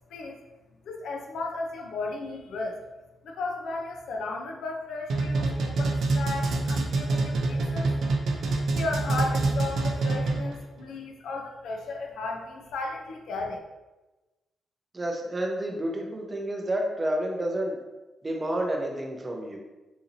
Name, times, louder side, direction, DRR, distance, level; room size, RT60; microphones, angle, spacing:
voice 1, 0.8-2.8 3.2-7.9 8.7-13.6, left 3 dB, 80° left, 3 dB, 0.4 m, -34 dB
sound 1, 5.1-10.6, right 3 dB, 65° right, 0.5 m, -26 dB
voice 2, 14.9-17.8 18.2-19.6, right 1 dB, 20° right, 0 dB, 0.5 m, -30 dB
4.0 x 2.7 x 2.6 m, 1.1 s
wide cardioid pair, 160°, 0 cm